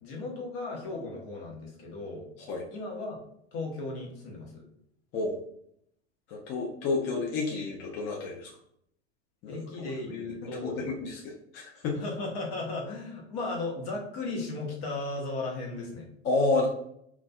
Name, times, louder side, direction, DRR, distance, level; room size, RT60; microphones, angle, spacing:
voice 1, 0.0-2.3 2.7-3.2 3.5-4.6 9.5-10.9 11.9-16.1, left 2 dB, 55° left, -1 dB, 0.9 m, -36 dB
voice 2, 6.3-8.5 9.4-9.9 10.6-12.0 16.2-16.7, left 3 dB, 35° left, -1 dB, 0.4 m, -30 dB
2.4 x 2.2 x 2.3 m, 0.71 s
hypercardioid pair, 85°, 34 cm